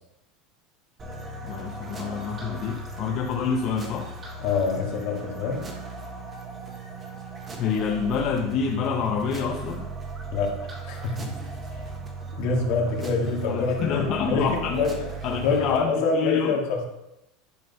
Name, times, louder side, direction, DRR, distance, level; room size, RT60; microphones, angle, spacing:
sound 1, 1.0-15.8, right 3 dB, 25° right, 1.4 m, -37 dB
voice 1, 1.4-4.1 7.6-9.9 13.4-14.8 15.2-16.6, left 6 dB, 45° left, 0 dB, 0.8 m, -27 dB
voice 2, 4.4-5.7 10.3-11.3 11.7-11.8 12.4-16.8, left 4 dB, 70° left, 1 dB, 1.9 m, -26 dB
10.5 x 3.8 x 5.4 m, 0.88 s
supercardioid pair, 145°, 0 cm